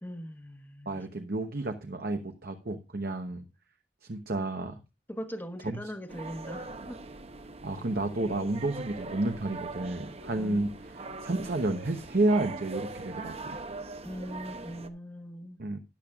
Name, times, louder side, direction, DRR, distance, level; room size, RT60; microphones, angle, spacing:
voice 1, 0.0-1.0 5.1-7.0 10.3-10.8 14.0-15.6, equal, 10° left, 1.1 m, -40 dB
voice 2, 0.9-3.4 4.1-4.8 5.6-5.8 7.6-13.6 15.6-15.8, right 2 dB, 60° right, 1.0 m, -31 dB
sound 1, 6.1-14.9, right 3 dB, 35° right, 0.8 m, -41 dB
13.0 x 10.5 x 2.4 m
head